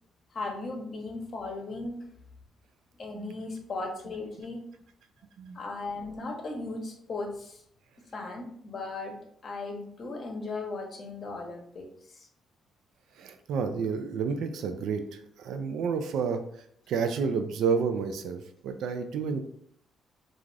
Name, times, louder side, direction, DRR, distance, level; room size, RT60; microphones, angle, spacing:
voice 1, 0.3-2.1 3.0-4.6 5.5-7.6 8.1-9.1 9.4-12.3, left 3 dB, 45° left, 2 dB, 0.7 m, -37 dB
voice 2, 13.2-16.4 16.9-19.4, right 5 dB, 80° right, 8 dB, 0.3 m, -30 dB
2.5 x 2.4 x 3.1 m, 0.67 s
cardioid pair, 90°, 0 cm